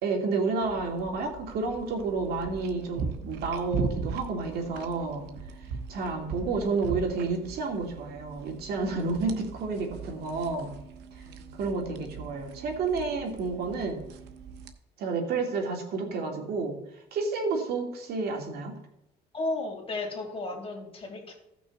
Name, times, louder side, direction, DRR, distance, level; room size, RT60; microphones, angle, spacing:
voice 1, 0.0-5.3 5.9-10.7 11.5-14.0 15.0-16.8 17.1-18.8, right 4 dB, 70° right, 2 dB, 2.4 m, -30 dB
sound 1, 0.6-14.7, right 5 dB, 85° right, 1.1 m, -39 dB
voice 2, 11.2-11.6 19.3-21.3, left 2 dB, 35° left, 1 dB, 3.1 m, -34 dB
15.5 x 6.1 x 4.2 m, 0.82 s
cardioid pair, 110°, 17 cm